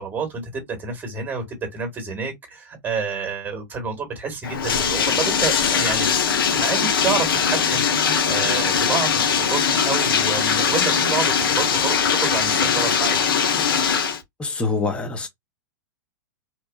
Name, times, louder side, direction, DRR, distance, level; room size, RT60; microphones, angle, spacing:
voice 1, 0.0-6.1 6.5-13.2, right 5 dB, 15° right, 1.1 m, -29 dB
Bathtub (filling or washing), 4.4-14.2, left 7 dB, 90° left, 0.7 m, -21 dB
voice 2, 14.4-15.3, left 3 dB, 10° left, 0.6 m, -25 dB
2.8 x 2.2 x 2.2 m
hypercardioid pair, 140°, 12 cm